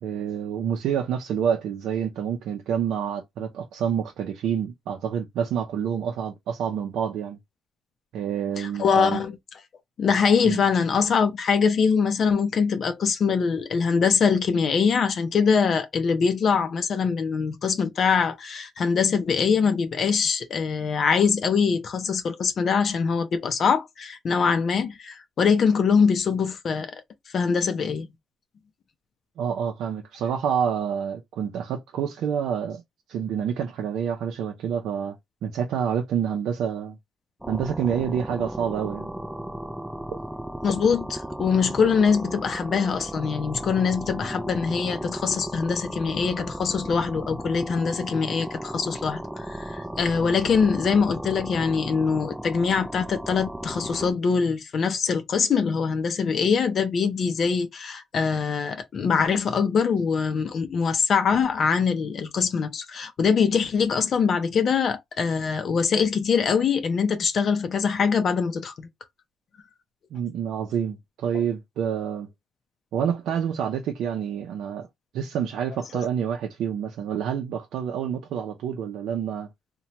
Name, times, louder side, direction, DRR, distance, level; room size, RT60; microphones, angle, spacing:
voice 1, 0.0-7.4 8.1-9.2 10.4-10.6 29.4-32.8 33.1-35.2 35.4-37.0 37.5-39.1 70.1-72.3 72.9-74.9 75.1-79.5, right 8 dB, 80° right, 0.5 m, -28 dB
voice 2, 8.6-9.4 10.0-27.0 27.3-28.1 40.6-68.9, left 6 dB, 55° left, 0.5 m, -23 dB
sound 1, 37.4-54.1, right 1 dB, 5° right, 0.3 m, -35 dB
2.8 x 2.2 x 2.8 m
cardioid pair, 90°, 0 cm